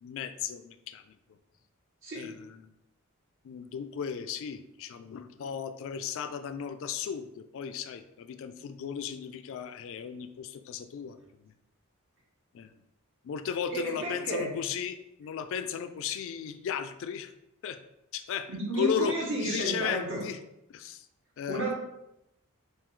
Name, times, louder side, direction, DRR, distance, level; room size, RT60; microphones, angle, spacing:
voice 1, 0.0-1.1 2.1-2.7 3.4-11.5 12.5-12.8 13.2-17.3 17.6-17.8 18.1-20.4 20.7-21.1 21.4-21.6, left 7 dB, 60° left, 10 dB, 0.3 m, -35 dB
voice 2, 13.7-14.5 18.5-20.2 21.5-21.7, right 1 dB, 60° right, -2 dB, 1.3 m, -32 dB
3.7 x 2.7 x 4.5 m, 0.86 s
head